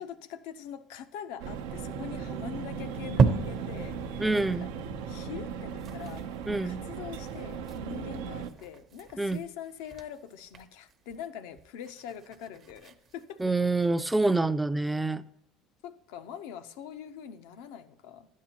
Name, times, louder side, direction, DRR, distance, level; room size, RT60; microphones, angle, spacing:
voice 1, 0.0-4.3 4.6-4.7 5.1-6.3 6.6-13.5 15.8-18.3, left 8 dB, 75° left, 0.6 m, -43 dB
sound 1, 1.4-8.5, right 6 dB, 80° right, 0.7 m, -37 dB
sound 2, 2.0-3.9 4.4-4.5 4.7-4.8 5.2-5.4 5.6-14.3, right 5 dB, 45° right, 0.8 m, -35 dB
voice 2, 4.2-4.7 6.5-6.8 9.2-9.4 13.4-15.2, right 2 dB, 10° right, 0.4 m, -26 dB
11.5 x 8.4 x 2.9 m
hypercardioid pair, 80°, 0 cm